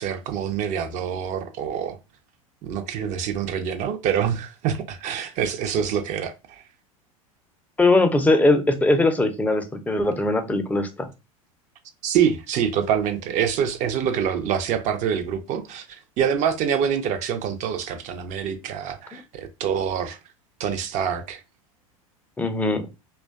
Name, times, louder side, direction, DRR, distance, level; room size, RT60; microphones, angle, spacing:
voice 1, 0.0-2.0 2.6-6.6 12.0-20.2 20.6-21.4, right 8 dB, 45° right, 0.5 m, -26 dB
voice 2, 7.8-11.1 22.4-22.8, left 2 dB, 10° left, 0.5 m, -20 dB
2.4 x 2.2 x 2.3 m
hypercardioid pair, 85°, 18 cm